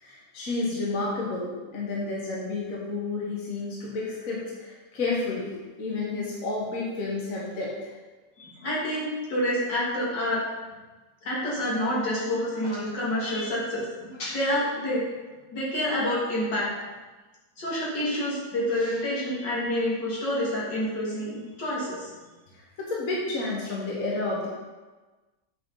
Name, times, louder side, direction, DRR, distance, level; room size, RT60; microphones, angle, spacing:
voice 1, 0.0-5.5 5.8-7.7 22.8-24.5, left 3 dB, 50° left, -4 dB, 1.5 m, -30 dB
voice 2, 8.4-10.4 11.2-15.0 15.5-16.7 17.6-22.1, left 1 dB, 70° left, -6 dB, 2.6 m, -28 dB
8.3 x 4.8 x 3.9 m, 1.3 s
omnidirectional pair, 2.0 m